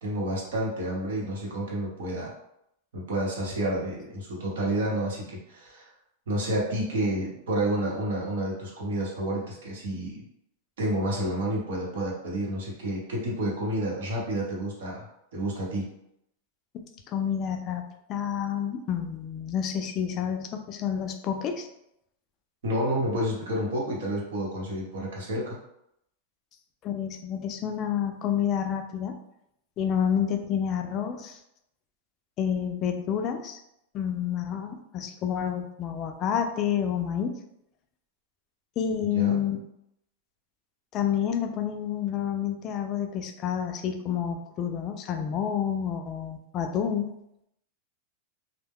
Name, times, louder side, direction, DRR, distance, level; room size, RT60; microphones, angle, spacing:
voice 1, 0.0-2.3 2.9-5.9 6.3-10.2 10.8-15.9 22.6-25.6 39.1-39.4, right 1 dB, 80° right, -3 dB, 1.0 m, -30 dB
voice 2, 17.1-21.7 26.8-29.2 29.8-31.4 32.4-33.6 33.9-37.4 38.8-39.6 40.9-47.1, left 8 dB, 30° left, 5 dB, 0.3 m, -29 dB
2.1 x 2.1 x 3.5 m, 0.78 s
supercardioid pair, 150°, 0 cm